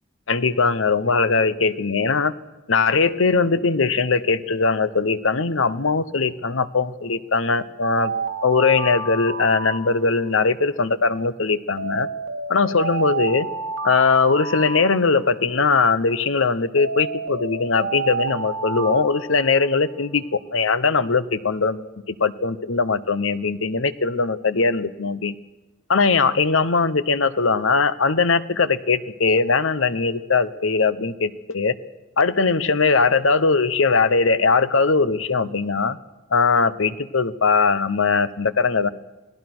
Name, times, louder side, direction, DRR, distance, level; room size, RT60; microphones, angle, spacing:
voice 1, 0.3-2.3 2.7-8.1 8.4-12.1 12.5-13.5 13.8-25.3 25.9-31.7 32.2-36.0 36.3-38.9, left 4 dB, 80° left, 15 dB, 1.0 m, -20 dB
Alarm, 7.8-10.4 11.8-15.4 16.8-20.0, right 3 dB, 90° right, 2.4 m, -30 dB
28.5 x 19.0 x 6.2 m, 1.1 s
head